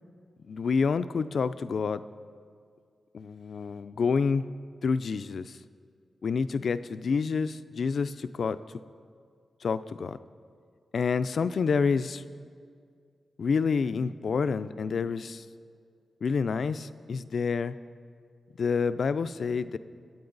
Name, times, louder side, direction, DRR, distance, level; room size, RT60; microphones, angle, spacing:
voice 1, 0.4-2.0 3.1-4.5 4.8-5.6 6.2-8.6 9.6-10.2 10.9-12.2 13.4-15.4 16.2-17.8 18.6-19.8, left 5 dB, 65° left, 13 dB, 0.4 m, -28 dB
23.5 x 8.8 x 4.0 m, 2.1 s
wide cardioid pair, 95°, 0 cm